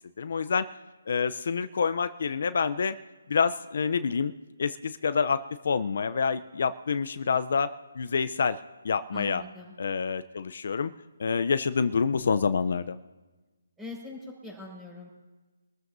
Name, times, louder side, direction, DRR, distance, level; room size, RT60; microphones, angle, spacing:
voice 1, 0.2-0.7 1.1-3.0 3.3-4.3 4.6-8.6 8.8-9.4 9.8-10.9 11.2-13.0, left 5 dB, 60° left, 12 dB, 0.5 m, -27 dB
voice 2, 9.1-9.7 13.8-15.1, left 3 dB, 5° right, -2 dB, 5.3 m, -42 dB
25.5 x 14.0 x 2.7 m, 1.2 s
hypercardioid pair, 155°, 0 cm